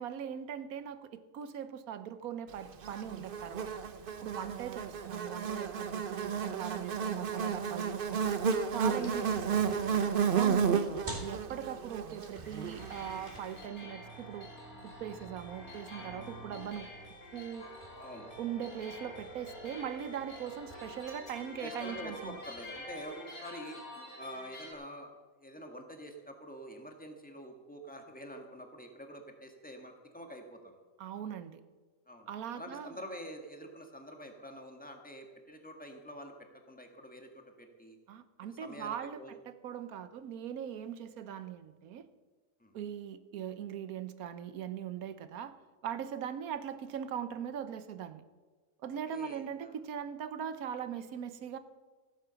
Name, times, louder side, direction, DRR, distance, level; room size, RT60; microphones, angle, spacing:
voice 1, 0.0-3.7 4.2-8.2 8.7-9.8 10.3-10.9 11.2-14.5 14.8-16.9 17.3-17.7 18.4-22.4 31.0-31.6 32.3-32.9 38.1-42.1 42.7-45.5 45.8-48.2 48.8-51.6, right 9 dB, 80° right, 12 dB, 1.2 m, -40 dB
Buzz, 2.8-13.3, right 6 dB, 45° right, 0.8 m, -32 dB
sound 1, 8.0-23.0, right 1 dB, 30° right, 2.4 m, -52 dB
sound 2, 12.8-24.7, left 1 dB, 75° left, 3.8 m, -47 dB
voice 2, 17.9-18.3 21.6-23.8 24.2-30.8 32.1-36.3 36.7-38.0 38.4-39.4 42.6-42.7 49.1-49.8, equal, 5° left, 3 dB, 1.6 m, -47 dB
15.0 x 9.2 x 6.9 m, 1.4 s
omnidirectional pair, 1.5 m